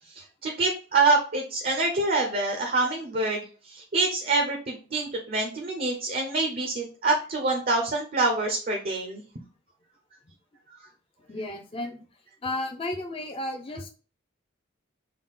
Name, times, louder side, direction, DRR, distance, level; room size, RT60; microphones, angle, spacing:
voice 1, 0.1-9.2, right 3 dB, 45° right, 2 dB, 0.6 m, -26 dB
voice 2, 11.3-12.1 12.4-13.9, left 1 dB, 25° left, 3 dB, 0.5 m, -33 dB
3.6 x 2.3 x 3.8 m, 0.37 s
head